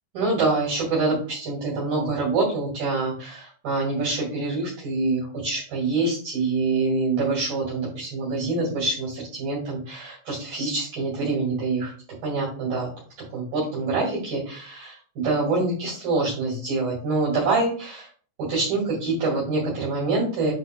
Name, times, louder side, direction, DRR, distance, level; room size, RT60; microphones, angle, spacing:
voice 1, 0.1-11.9 12.2-12.9 13.3-18.1 18.4-20.5, right 3 dB, 55° right, -5 dB, 3.7 m, -25 dB
9.6 x 5.7 x 2.2 m, 0.41 s
omnidirectional pair, 5.6 m